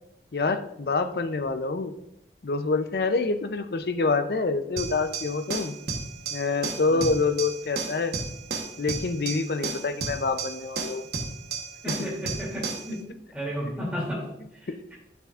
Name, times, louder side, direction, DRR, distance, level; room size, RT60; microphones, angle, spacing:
voice 1, 0.3-1.9 2.4-5.7 6.3-8.1 8.8-11.0 14.7-14.8, left 3 dB, 60° left, 9 dB, 0.5 m, -26 dB
sound 1, 4.8-12.9, right 4 dB, 60° right, 1.1 m, -33 dB
voice 2, 11.8-13.0 13.3-14.9, equal, 5° right, -5 dB, 2.7 m, -33 dB
8.5 x 6.9 x 2.4 m, 0.80 s
head